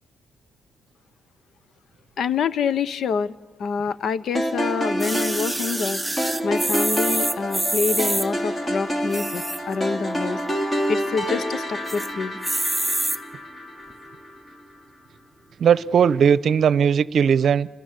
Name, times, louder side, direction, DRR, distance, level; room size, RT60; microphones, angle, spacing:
voice 1, 2.2-6.0 6.4-10.4 10.9-12.4, left 5 dB, 60° left, 18 dB, 0.9 m, -26 dB
sound 1, 4.3-14.6, equal, 20° left, 3.4 m, -28 dB
sound 2, 5.0-8.3 9.0-9.7 10.2-10.3 10.5-10.6 10.9-11.4 11.9-12.1 12.4-13.2 13.9-14.0, right 1 dB, 5° right, 1.3 m, -26 dB
voice 2, 15.6-17.7, right 7 dB, 60° right, 19 dB, 0.8 m, -18 dB
29.0 x 21.0 x 8.3 m, 1.2 s
cardioid pair, 90°, 0 cm